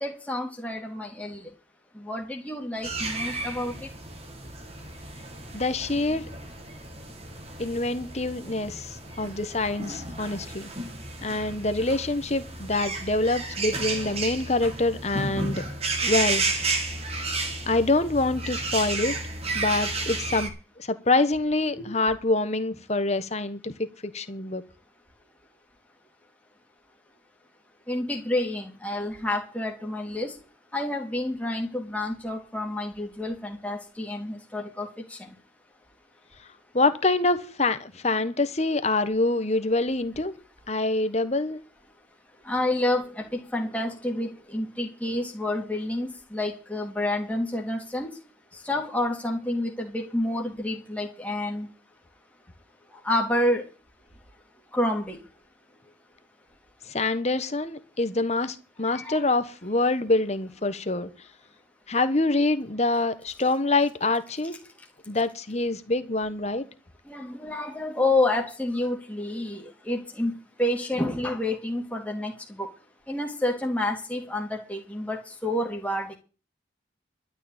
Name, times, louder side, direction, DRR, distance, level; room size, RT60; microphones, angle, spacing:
voice 1, 0.0-1.5 2.0-3.9 21.7-21.9 27.9-30.3 30.7-35.2 42.4-48.1 48.6-51.7 53.0-53.7 54.7-55.2 58.9-59.2 67.1-72.7 73.1-76.2, left 1 dB, 5° left, 2.7 m, -29 dB
sound 1, 2.8-20.5, right 3 dB, 30° right, 2.3 m, -32 dB
voice 2, 5.5-6.2 7.6-10.7 11.2-15.6 16.0-16.4 17.7-19.2 19.5-20.5 20.8-23.7 24.0-24.6 36.7-40.4 40.7-41.6 56.9-61.1 61.9-64.6 65.1-66.6, left 2 dB, 35° left, 1.2 m, -25 dB
12.5 x 6.6 x 9.0 m
head